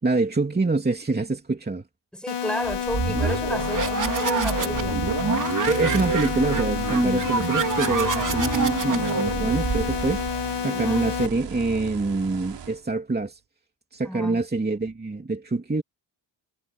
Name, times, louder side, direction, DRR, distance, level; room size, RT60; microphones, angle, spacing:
voice 1, 0.0-1.8 5.7-10.2 10.6-13.4 13.9-15.8, right 3 dB, 20° right, 3.0 m, -25 dB
voice 2, 2.1-5.1 10.7-11.1 14.0-14.4, equal, ahead, 7.0 m, -33 dB
sound 1, 2.3-11.3, left 9 dB, 70° left, 1.6 m, -29 dB
sound 2, 2.7-10.3, right 5 dB, 45° right, 3.5 m, -27 dB
sound 3, 5.6-12.8, right 8 dB, 70° right, 6.1 m, -35 dB
cardioid pair, 110°, 44 cm